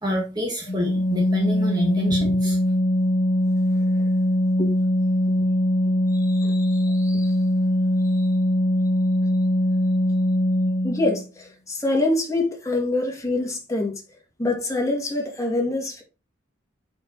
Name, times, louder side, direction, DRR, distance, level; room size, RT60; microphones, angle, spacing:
voice 1, 0.0-2.6, left 1 dB, 20° right, 1.9 m, -27 dB
Organ, 0.7-11.3, left 1 dB, 50° left, 1.4 m, -21 dB
voice 2, 5.9-7.3 8.0-8.3 10.8-14.0 14.4-16.0, left 2 dB, 15° left, 2.4 m, -26 dB
7.6 x 5.8 x 4.2 m
head